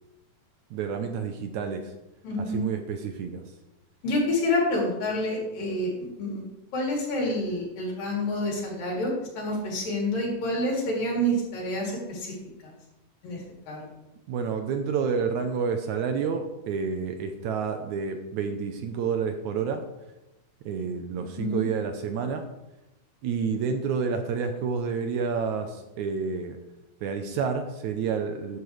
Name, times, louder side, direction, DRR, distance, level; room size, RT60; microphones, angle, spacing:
voice 1, 0.7-1.9 2.4-3.4 14.3-19.8 20.7-22.5 23.2-26.6 27.0-28.6, right 6 dB, 75° right, 6 dB, 1.9 m, -29 dB
voice 2, 2.2-2.6 4.0-5.9 6.2-6.4 6.7-12.3 12.6-12.7 13.2-13.9 21.4-21.6, left 1 dB, 80° left, -3 dB, 5.0 m, -28 dB
13.0 x 10.5 x 3.3 m, 0.96 s
omnidirectional pair, 3.9 m